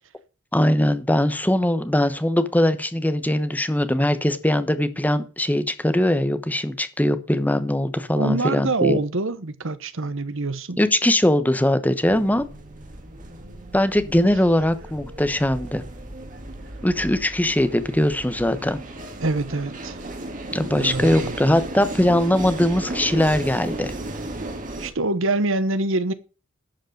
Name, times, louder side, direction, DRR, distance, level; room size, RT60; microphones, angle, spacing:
voice 1, 0.5-9.0 10.8-12.5 13.7-15.8 16.8-18.8 20.5-23.9, left 1 dB, 10° left, 1.0 m, -21 dB
voice 2, 8.1-10.8 19.2-20.0 20.7-21.4 24.8-26.1, right 2 dB, 70° right, 1.1 m, -25 dB
sound 1, 12.0-24.9, right 1 dB, 40° right, 2.0 m, -35 dB
11.5 x 5.2 x 7.8 m
head